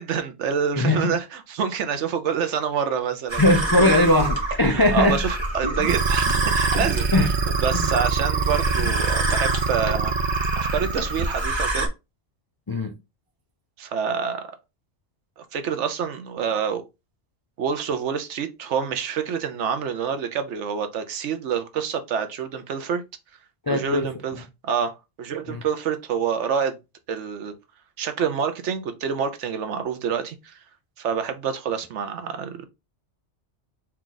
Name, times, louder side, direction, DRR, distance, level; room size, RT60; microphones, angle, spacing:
voice 1, 0.0-3.4 3.8-4.0 4.7-7.3 7.6-10.1 10.6-11.9 13.8-14.5 15.5-16.8 17.6-23.0 23.7-24.4 24.6-26.8 27.1-27.5 28.0-30.6 31.0-32.7, right 7 dB, 80° right, 1.0 m, -27 dB
voice 2, 0.8-1.1 3.4-5.2 6.8-7.3 7.7-7.9 12.7-12.9 23.7-24.1 25.5-25.6, left 1 dB, 35° left, 0.3 m, -20 dB
sound 1, 3.3-11.9, right 2 dB, 25° right, 0.9 m, -26 dB
sound 2, 5.9-11.5, right 7 dB, 60° right, 0.4 m, -27 dB
4.3 x 2.4 x 3.9 m
omnidirectional pair, 1.2 m